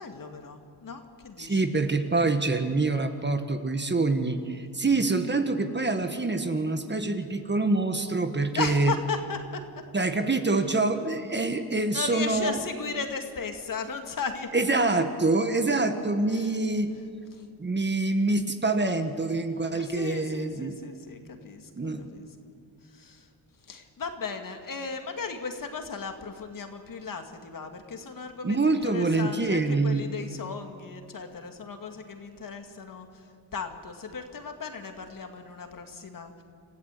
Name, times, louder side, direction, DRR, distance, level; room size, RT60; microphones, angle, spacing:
voice 1, 0.0-1.7 8.6-9.6 11.9-14.8 16.4-16.5 19.7-22.3 23.0-23.2 23.7-33.1 33.5-36.3, left 5 dB, 50° left, 5 dB, 2.2 m, -36 dB
voice 2, 1.4-8.9 9.9-12.6 14.5-16.9 17.6-20.7 21.7-22.1 28.4-30.0, right 3 dB, 25° right, 7 dB, 1.5 m, -26 dB
27.5 x 14.5 x 8.4 m, 2.5 s
cardioid pair, 90°, 41 cm